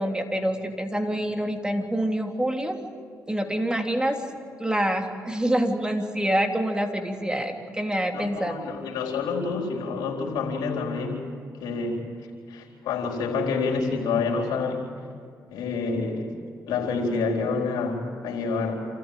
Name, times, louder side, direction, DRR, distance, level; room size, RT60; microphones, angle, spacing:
voice 1, 0.0-2.8 3.3-4.2 4.6-8.6, right 1 dB, 10° right, 3 dB, 3.2 m, -26 dB
voice 2, 8.1-11.3 11.6-12.1 12.5-14.9 15.5-16.3 16.7-18.7, left 4 dB, 85° left, 0 dB, 4.2 m, -28 dB
27.5 x 14.5 x 9.2 m, 2.2 s
supercardioid pair, 55°, 7 cm